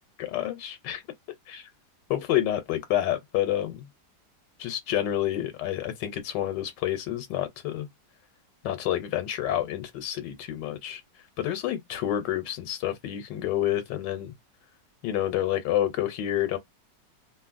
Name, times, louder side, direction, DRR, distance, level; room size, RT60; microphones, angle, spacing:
voice 1, 0.2-1.0 1.5-1.7 2.1-3.8 4.6-7.9 8.6-11.0 11.4-14.3 15.0-16.6, left 12 dB, 80° left, 1.2 m, -28 dB
2.8 x 2.6 x 2.4 m
omnidirectional pair, 1.9 m